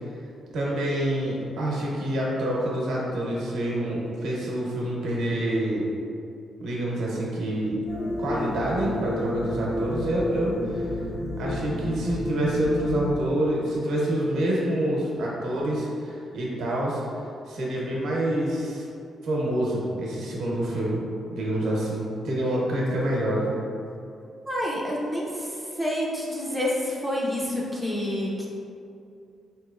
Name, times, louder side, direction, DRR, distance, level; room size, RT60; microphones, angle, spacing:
voice 1, 0.5-5.9 6.6-7.8 8.2-11.0 11.4-18.9 19.2-21.0 21.3-23.5, right 1 dB, 85° right, -4 dB, 0.9 m, -27 dB
sound 1, 7.9-13.1, left 1 dB, 50° left, 1.0 m, -31 dB
voice 2, 24.5-25.5 25.8-28.5, left 1 dB, ahead, -6 dB, 0.5 m, -28 dB
4.3 x 2.9 x 2.4 m, 2.6 s
cardioid pair, 155°, 0 cm